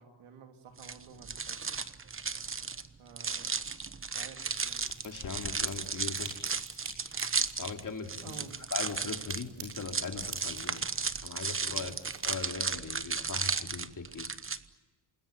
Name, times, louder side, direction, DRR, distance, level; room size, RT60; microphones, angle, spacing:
voice 1, 0.0-1.6 3.0-3.6 4.1-4.8 8.2-8.6 11.7-11.9, right 5 dB, 90° right, 4 dB, 3.2 m, -51 dB
sound 1, 0.8-14.6, right 5 dB, 25° right, 1.1 m, -34 dB
sound 2, 4.5-12.7, right 5 dB, 70° right, 6.0 m, -50 dB
sound 3, 4.7-12.1, left 6 dB, 85° left, 4.2 m, -55 dB
voice 2, 5.0-6.3 7.6-8.4 8.7-10.8 11.2-11.9 12.2-14.3, left 4 dB, 40° left, 4 dB, 3.3 m, -39 dB
28.0 x 20.5 x 8.9 m, 1.2 s
cardioid pair, 85°, 48 cm